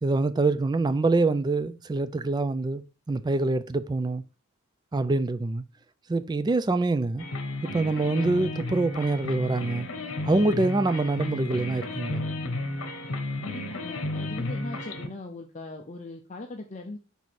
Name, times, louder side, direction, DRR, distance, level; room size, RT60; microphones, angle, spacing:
voice 1, 0.0-4.2 4.9-5.6 6.1-7.3 7.6-9.9 10.2-12.3, right 3 dB, 20° right, 0.3 m, -25 dB
sound 1, 7.2-15.1, left 2 dB, 70° left, 1.0 m, -33 dB
voice 2, 13.4-17.0, left 2 dB, 35° left, 0.6 m, -39 dB
5.4 x 4.7 x 4.1 m
head